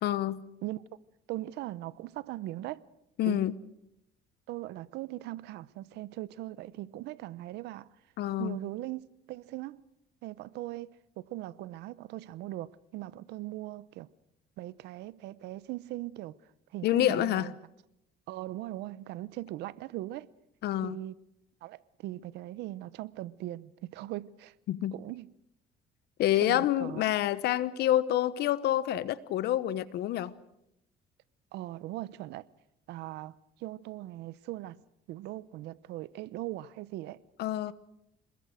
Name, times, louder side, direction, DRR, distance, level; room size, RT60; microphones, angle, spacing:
voice 1, 0.0-0.4 3.2-3.5 8.2-8.6 16.8-17.5 20.6-21.0 24.7-24.9 26.2-30.3 37.4-37.7, left 12 dB, 75° left, 1.1 m, -27 dB
voice 2, 1.3-2.8 3.2-3.4 4.5-7.9 8.4-9.0 9.3-9.8 10.2-14.1 14.6-16.4 16.7-17.5 18.3-20.3 20.8-21.2 21.6-24.5 24.9-25.3 26.4-27.0 31.5-32.4 32.9-34.8 35.1-37.2, right 16 dB, 85° right, 0.9 m, -40 dB
27.5 x 21.0 x 6.4 m
cardioid pair, 110°, 17 cm